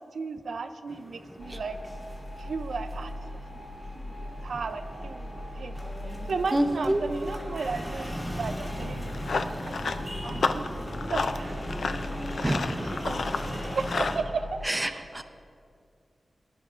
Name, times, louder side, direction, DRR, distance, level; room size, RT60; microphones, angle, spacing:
voice 1, 0.1-1.8 2.4-3.1 4.0-4.1 4.4-5.8 6.3-9.2 9.7-11.5 13.1-13.4 13.7-15.2, right 4 dB, 85° right, 9 dB, 0.4 m, -35 dB
sound 1, 0.9-14.2, equal, 20° left, 1.8 m, -39 dB
sound 2, 1.4-14.7, left 1 dB, 40° left, 1.1 m, -40 dB
voice 2, 6.5-7.0 12.4-13.0 14.6-15.2, right 1 dB, 15° right, 7 dB, 0.6 m, -27 dB
Run, 8.9-14.2, left 4 dB, 80° left, 0.4 m, -32 dB
20.0 x 10.5 x 2.4 m, 2.3 s
wide cardioid pair, 110°, 0 cm